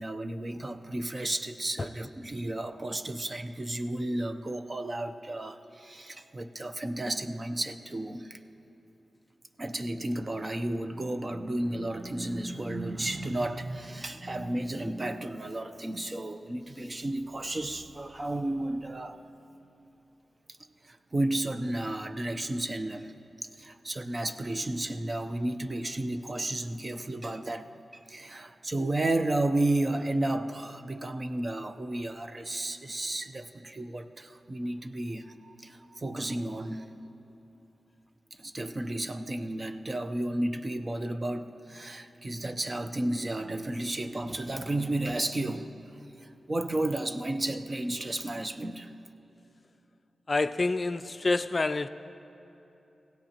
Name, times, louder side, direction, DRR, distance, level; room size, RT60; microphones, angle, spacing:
voice 1, 0.0-8.4 9.6-19.2 20.9-23.1 23.6-27.7 28.1-36.9 38.3-45.7 46.2-48.9, right 1 dB, 30° right, 0.7 m, -32 dB
voice 2, 50.3-51.9, left 3 dB, 40° left, 0.3 m, -27 dB
23.0 x 16.5 x 3.0 m
cardioid pair, 70°, 0 cm